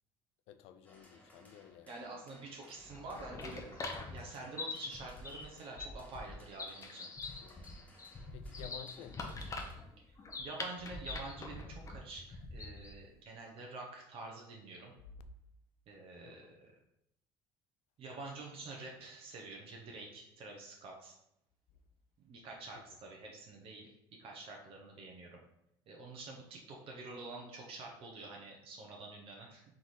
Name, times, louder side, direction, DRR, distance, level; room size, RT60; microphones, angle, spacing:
voice 1, 0.5-2.1 7.4-7.7 8.3-9.6 16.2-16.5 22.7-22.8, left 10 dB, 70° left, 10 dB, 0.4 m, -53 dB
sound 1, 0.8-9.7, left 1 dB, 15° left, 1.3 m, -62 dB
voice 2, 1.9-7.1 10.4-14.9 15.9-16.7 18.0-21.1 22.2-23.9 24.2-25.4 25.9-29.6, right 3 dB, 55° right, 0 dB, 0.9 m, -48 dB
sound 2, 2.8-13.0, left 3 dB, 30° left, 0.7 m, -44 dB
3.7 x 3.1 x 4.1 m, 0.78 s
supercardioid pair, 90°, 11 cm